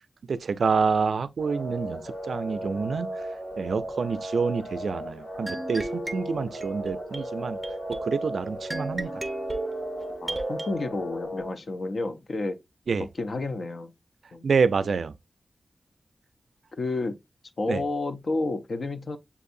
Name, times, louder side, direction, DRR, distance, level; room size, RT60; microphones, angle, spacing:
voice 1, 0.3-2.0 2.3-3.1 3.6-7.6 7.9-9.1 12.9-13.0 14.4-15.1 17.7-17.8, right 5 dB, 80° right, 0.3 m, -27 dB
sound 1, 1.4-11.5, equal, 85° left, 2.0 m, -36 dB
sound 2, 5.5-10.7, right 2 dB, 20° right, 0.5 m, -36 dB
voice 2, 10.2-12.6 13.0-13.9 14.3-14.5 16.8-17.2 17.6-19.2, left 2 dB, 60° left, 0.5 m, -30 dB
6.9 x 2.7 x 2.5 m
wide cardioid pair, 105°, 0 cm